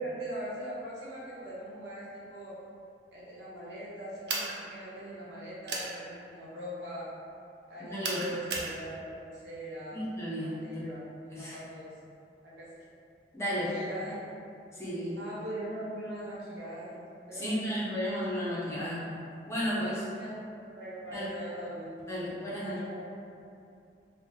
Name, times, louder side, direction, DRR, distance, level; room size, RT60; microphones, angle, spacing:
voice 1, 0.0-2.5 3.1-7.1 7.7-10.0 10.4-11.1 11.4-11.9 12.4-12.8 13.5-14.2 15.2-17.7 20.2-21.9 22.6-23.2, right 1 dB, 85° right, -8 dB, 0.9 m, -41 dB
sound 1, 4.3-4.6 5.7-5.9 8.0-8.7, right 3 dB, 70° right, 0.5 m, -33 dB
voice 2, 7.8-8.2 9.9-10.9 11.3-11.6 13.3-13.7 14.7-15.2 17.3-19.0 19.5-20.1 21.1-21.3 22.1-22.8, equal, 15° left, -8 dB, 0.5 m, -33 dB
3.6 x 2.0 x 2.7 m, 2.6 s
head